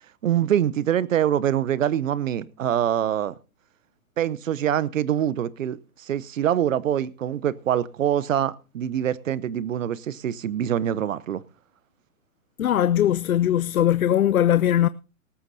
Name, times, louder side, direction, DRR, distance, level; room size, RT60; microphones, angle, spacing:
voice 1, 0.2-3.3 4.2-11.4, right 10 dB, 65° right, 0.9 m, -24 dB
voice 2, 12.6-14.9, left 11 dB, 75° left, 0.6 m, -20 dB
18.5 x 13.5 x 2.7 m
hypercardioid pair, 130°, 42 cm